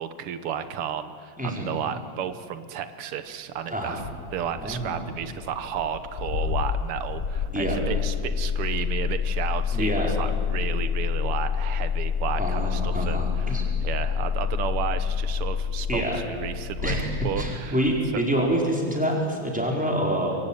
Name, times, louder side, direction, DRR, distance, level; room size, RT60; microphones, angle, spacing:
voice 1, 0.0-4.0 4.3-17.0 17.2-17.8 18.1-18.2, right 9 dB, 90° right, 11 dB, 2.0 m, -33 dB
voice 2, 1.4-1.7 3.7-4.0 4.6-5.0 7.5-7.8 9.7-10.1 12.4-13.6 15.9-16.2 16.8-17.1 17.4-20.4, right 1 dB, 5° right, -1 dB, 4.7 m, -26 dB
Engine starting, 4.0-18.1, left 7 dB, 60° left, 0.9 m, -28 dB
26.0 x 23.0 x 9.0 m, 2.2 s
omnidirectional pair, 2.4 m